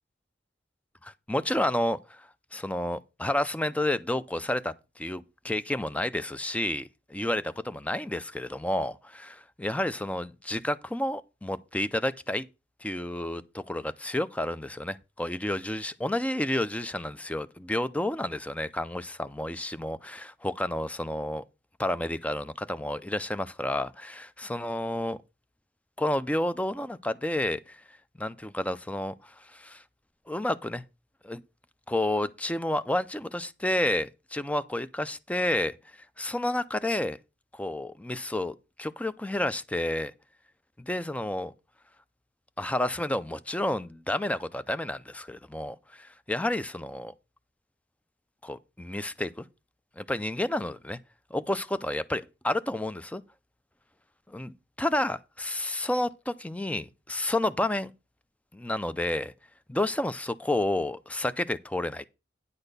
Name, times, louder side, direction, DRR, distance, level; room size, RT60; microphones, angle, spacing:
voice 1, 1.0-12.5 12.8-21.4 21.8-25.2 26.0-27.8 28.2-29.8 30.3-30.8 31.2-31.4 31.9-35.7 36.2-37.2 37.5-40.1 40.8-41.5 42.6-47.1 48.4-49.4 50.0-51.0 51.3-53.2 54.3-57.9 58.5-59.3 59.7-62.0, left 1 dB, 5° left, 0.5 m, -30 dB
9.8 x 4.2 x 6.7 m
head